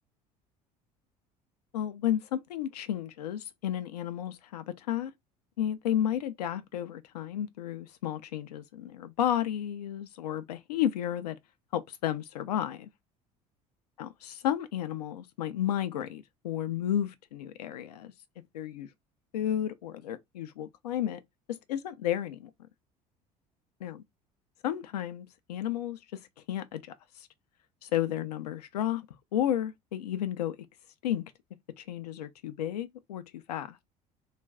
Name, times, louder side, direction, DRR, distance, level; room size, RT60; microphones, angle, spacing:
voice 1, 1.7-5.1 5.6-11.4 11.7-12.9 14.0-18.1 18.5-18.9 19.3-21.2 21.5-22.5 23.8-24.0 24.6-26.0 26.5-26.8 27.8-29.1 29.3-30.6 31.0-31.2 31.8-33.2 33.5-33.8, left 11 dB, 75° left, 0.5 m, -32 dB
2.4 x 2.2 x 3.5 m
figure-of-eight pair, 60°, 20 cm